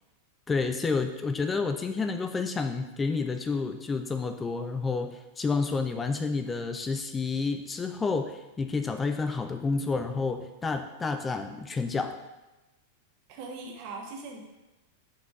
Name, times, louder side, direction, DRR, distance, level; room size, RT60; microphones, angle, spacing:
voice 1, 0.5-12.2, left 4 dB, 15° left, 7 dB, 0.4 m, -30 dB
voice 2, 13.3-14.4, right 3 dB, 45° right, 2 dB, 1.3 m, -40 dB
6.9 x 5.8 x 3.8 m, 1.0 s
figure-of-eight pair, 90°, 0 cm